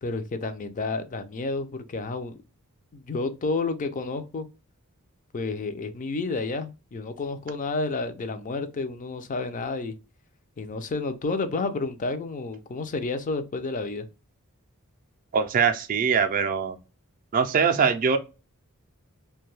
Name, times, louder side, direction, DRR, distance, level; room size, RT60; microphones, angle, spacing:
voice 1, 0.0-2.4 2.9-4.5 5.3-9.9 10.6-14.1, left 3 dB, 35° left, 0.4 m, -30 dB
voice 2, 15.3-16.8 17.3-18.2, right 6 dB, 40° right, 0.3 m, -22 dB
2.6 x 2.2 x 3.1 m
head